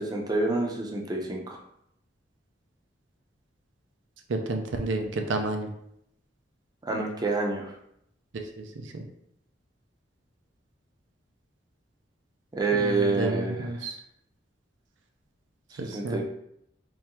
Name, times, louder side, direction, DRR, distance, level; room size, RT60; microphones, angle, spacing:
voice 1, 0.0-1.6 6.9-7.7 12.5-13.6 15.9-16.2, right 3 dB, 20° right, 0 dB, 0.6 m, -27 dB
voice 2, 4.3-5.7 8.3-9.0 12.7-14.0 15.8-16.2, right 2 dB, 85° right, 4 dB, 0.5 m, -31 dB
3.6 x 3.1 x 2.9 m, 0.74 s
head